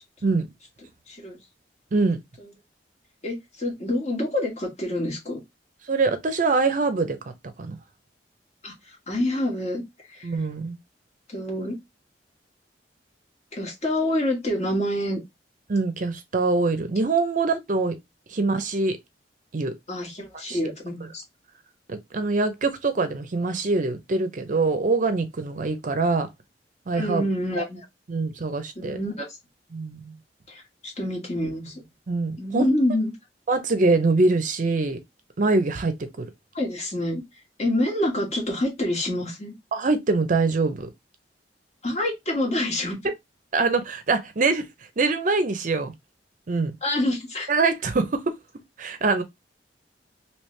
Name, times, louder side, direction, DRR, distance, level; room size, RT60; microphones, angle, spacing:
voice 1, 1.1-1.4 3.2-5.4 8.6-8.7 9.1-9.8 10.1-10.3 11.3-11.8 13.5-15.2 19.9-21.2 27.0-27.8 28.7-29.2 30.5-31.8 32.4-33.1 36.5-37.2 37.6-39.5 41.8-43.0 46.8-47.5, left 1 dB, 40° left, 1.4 m, -27 dB
voice 2, 1.9-2.2 5.9-7.2 7.6-7.8 10.2-10.8 15.7-18.0 18.3-19.0 19.5-19.7 20.5-20.7 21.9-26.3 26.9-27.3 28.1-29.0 29.7-30.1 32.1-32.7 33.5-35.0 35.4-36.2 39.7-40.9 43.5-44.6 45.0-45.9 46.5-46.7 47.5-48.3 48.8-49.2, right 3 dB, 45° right, 0.5 m, -24 dB
3.2 x 2.9 x 3.1 m
head